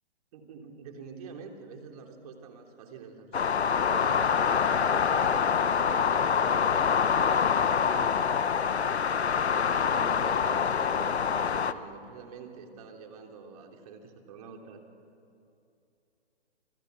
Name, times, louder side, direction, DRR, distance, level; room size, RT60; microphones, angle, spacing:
voice 1, 0.3-6.5 7.3-8.6 9.3-14.8, right 5 dB, 35° right, 3 dB, 3.4 m, -46 dB
sound 1, 3.3-11.7, left 6 dB, 75° left, 1.4 m, -25 dB
27.0 x 21.5 x 8.3 m, 2.6 s
hypercardioid pair, 150°, 33 cm